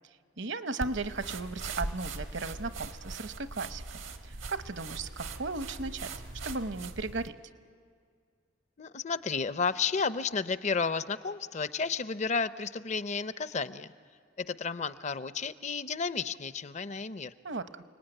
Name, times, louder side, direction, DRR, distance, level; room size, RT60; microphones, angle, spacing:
voice 1, 0.4-3.8 4.2-6.1 6.4-7.4 17.4-17.8, right 3 dB, 65° right, 11 dB, 0.9 m, -36 dB
sound 1, 0.8-7.3, right 3 dB, 90° right, 1.6 m, -40 dB
voice 2, 8.8-13.9 14.4-17.3, left 5 dB, 35° left, 14 dB, 0.6 m, -32 dB
29.5 x 19.5 x 9.1 m, 2.1 s
head